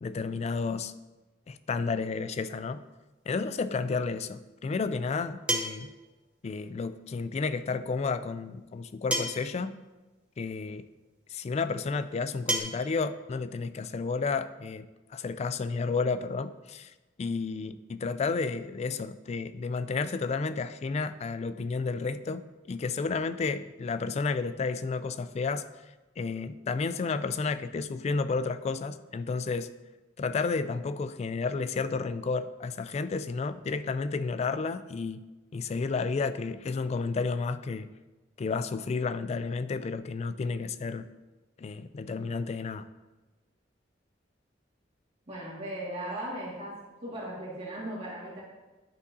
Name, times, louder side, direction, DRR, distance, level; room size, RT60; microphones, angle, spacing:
voice 1, 0.0-0.9 1.5-2.8 3.3-5.9 6.4-9.8 10.4-10.9 11.3-16.9 17.2-25.6 26.2-29.7 30.2-35.2 35.5-37.9 38.4-41.1 41.6-42.9, left 4 dB, 35° left, 13 dB, 0.3 m, -31 dB
sound 1, 3.8-3.9 5.5-6.0 7.5-7.6 9.1-9.6 10.8-10.9 12.5-12.6, right 1 dB, 5° right, 0.7 m, -29 dB
voice 2, 45.3-46.7 47.0-48.4, right 1 dB, 35° right, -7 dB, 1.9 m, -37 dB
10.5 x 5.5 x 2.7 m, 1.1 s
head